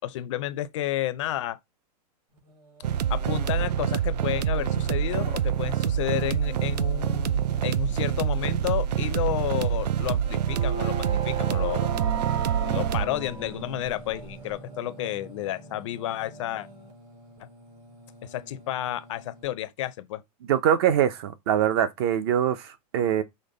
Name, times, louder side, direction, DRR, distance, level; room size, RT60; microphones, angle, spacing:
voice 1, 0.0-1.6 3.1-11.9 12.6-16.7 17.4-17.5 18.2-20.2, left 13 dB, 50° left, 0.5 m, -31 dB
Singing, 2.3-19.4, right 2 dB, 75° right, 3.0 m, -47 dB
sound 1, 2.8-13.1, right 9 dB, 90° right, 0.4 m, -26 dB
sound 2, 9.5-14.5, right 8 dB, 55° right, 2.1 m, -35 dB
voice 2, 20.5-23.2, right 9 dB, 40° right, 0.5 m, -23 dB
5.1 x 2.1 x 3.7 m
supercardioid pair, 160°, 20 cm